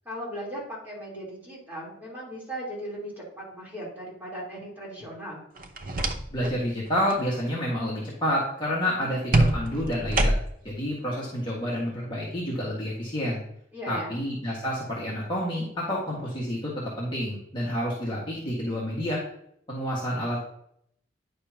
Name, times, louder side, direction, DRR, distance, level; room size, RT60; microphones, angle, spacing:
voice 1, 0.0-5.4 13.7-14.1, equal, 10° right, -6 dB, 3.7 m, -37 dB
sound 1, 5.6-6.6 6.9-7.2 9.3-10.7, right 1 dB, 45° right, 0.8 m, -25 dB
voice 2, 6.3-10.3 10.6-13.4 13.9-19.2 19.7-20.4, equal, 25° left, -6 dB, 1.8 m, -29 dB
9.8 x 6.6 x 2.9 m, 0.70 s
head